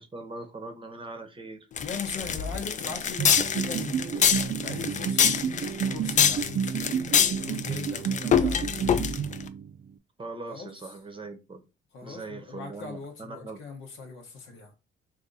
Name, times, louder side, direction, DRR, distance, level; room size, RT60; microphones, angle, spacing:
voice 1, 0.0-1.7 10.2-11.6 12.0-13.6, right 3 dB, 25° right, 0.8 m, -41 dB
voice 2, 1.8-5.6 5.9-8.9 10.4-10.9 11.9-14.7, left 4 dB, 80° left, 0.9 m, -40 dB
sound 1, 1.8-9.4, left 7 dB, 40° left, 0.4 m, -25 dB
sound 2, 3.2-9.9, right 7 dB, 45° right, 0.4 m, -31 dB
2.7 x 2.5 x 3.7 m
cardioid pair, 90°, 20 cm